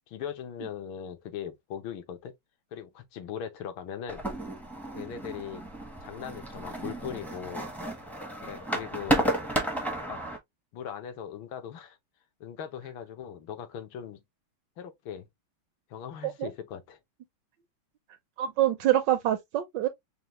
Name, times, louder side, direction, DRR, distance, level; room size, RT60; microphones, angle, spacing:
voice 1, 0.1-2.3 2.7-4.2 5.0-5.6 6.0-7.7 8.4-9.3 10.1-10.2 10.7-12.0 12.4-14.2 14.8-15.3 15.9-17.0, left 8 dB, 75° left, 1.6 m, -39 dB
sound 1, 4.1-10.4, right 1 dB, ahead, 0.4 m, -32 dB
voice 2, 18.4-19.9, right 13 dB, 75° right, 1.1 m, -26 dB
5.5 x 2.2 x 2.9 m
omnidirectional pair, 2.3 m